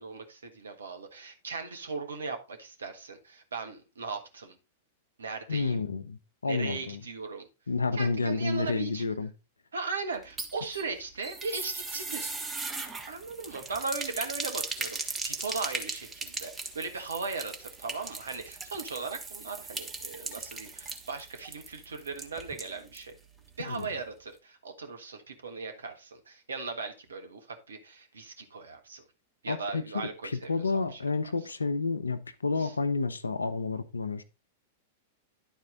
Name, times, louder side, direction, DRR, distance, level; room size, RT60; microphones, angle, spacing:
voice 1, 0.0-4.6 5.2-5.9 6.4-7.5 7.9-9.0 9.7-12.3 13.1-23.2 23.6-29.0 29.4-31.0 32.6-32.7, right 4 dB, 75° right, 1.4 m, -38 dB
voice 2, 5.5-7.0 7.7-9.3 23.6-23.9 29.5-29.8 30.2-34.2, left 3 dB, 80° left, 0.7 m, -30 dB
sound 1, 10.1-23.1 23.4-23.5 23.8-23.9, right 3 dB, 15° right, 1.2 m, -38 dB
10.5 x 4.5 x 3.8 m
figure-of-eight pair, 100°, 0 cm